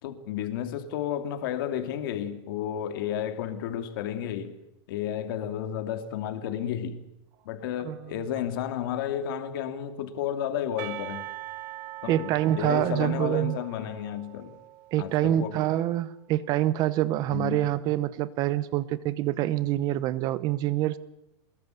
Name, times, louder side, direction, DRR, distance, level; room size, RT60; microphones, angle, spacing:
voice 1, 0.0-4.5 4.9-7.0 7.4-11.3 12.0-14.6 15.0-15.6 17.3-17.7, left 10 dB, 50° left, 2.6 m, -32 dB
Percussion, 10.8-15.6, right 15 dB, 45° right, 1.4 m, -42 dB
voice 2, 12.1-13.6 14.9-21.0, right 13 dB, 25° right, 0.8 m, -26 dB
23.5 x 21.5 x 8.2 m
supercardioid pair, 175°, 15 cm